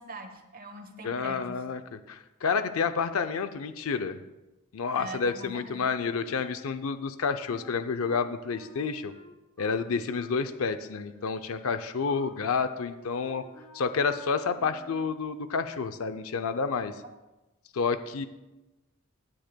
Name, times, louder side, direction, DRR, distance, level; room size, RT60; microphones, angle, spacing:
voice 1, 0.0-1.6 4.9-5.9, right 2 dB, 40° right, 6 dB, 1.1 m, -42 dB
voice 2, 1.0-4.2 4.7-9.1 9.6-13.4 13.7-16.9 17.7-18.2, left 5 dB, 65° left, 10 dB, 0.5 m, -29 dB
Wind instrument woodwind instrument, 7.5-10.4 10.6-15.1, left 1 dB, 10° left, 2.6 m, -52 dB
22.0 x 7.7 x 2.2 m, 1.0 s
head